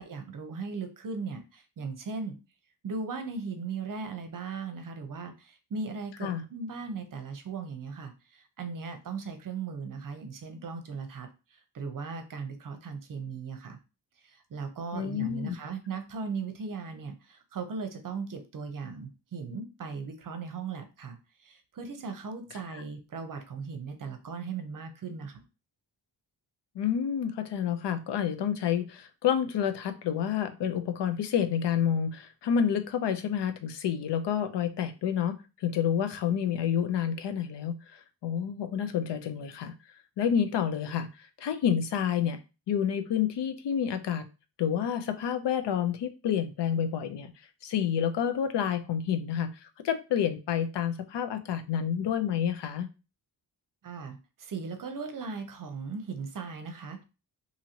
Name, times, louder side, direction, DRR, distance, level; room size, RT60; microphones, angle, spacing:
voice 1, 0.0-2.4 2.8-13.8 14.2-25.4 53.8-57.0, right 4 dB, 50° right, 7 dB, 0.7 m, -38 dB
voice 2, 14.9-15.5 22.7-22.8 26.7-39.7 40.2-42.4 42.7-44.3 44.6-47.3 47.6-52.9, left 8 dB, 70° left, 9 dB, 0.6 m, -29 dB
2.8 x 2.6 x 2.8 m, 0.30 s
cardioid pair, 80°, 43 cm